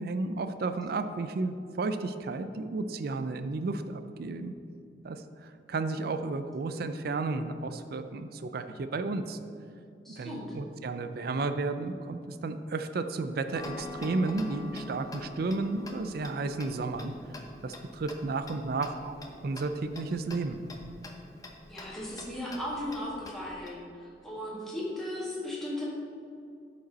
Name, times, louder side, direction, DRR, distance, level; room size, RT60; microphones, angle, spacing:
voice 1, 0.0-4.5 5.0-9.4 10.1-17.1 17.6-20.6, right 3 dB, 60° right, 9 dB, 0.4 m, -33 dB
voice 2, 10.0-10.6 21.7-25.8, left 1 dB, ahead, -6 dB, 1.9 m, -36 dB
Tick-tock, 13.5-23.7, left 2 dB, 20° left, 0.8 m, -45 dB
11.5 x 5.2 x 4.1 m, 2.5 s
head